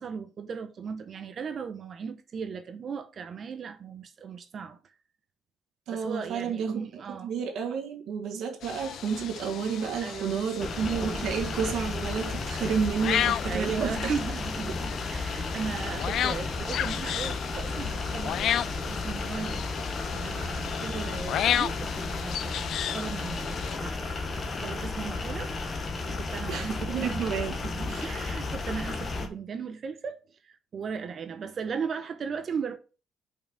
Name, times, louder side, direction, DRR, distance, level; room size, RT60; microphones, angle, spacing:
voice 1, 0.0-4.8 5.9-7.3 10.0-11.3 13.5-22.5 22.9-32.8, right 6 dB, 40° right, 0.8 m, -37 dB
voice 2, 5.9-14.1 14.7-14.8 26.5-27.6 27.9-28.1, right 6 dB, 65° right, 1.6 m, -31 dB
sound 1, 8.6-23.8, left 10 dB, 60° left, 0.3 m, -34 dB
sound 2, 10.6-29.3, left 3 dB, 30° left, 1.2 m, -33 dB
5.6 x 4.8 x 6.2 m
cardioid pair, 140°, 0 cm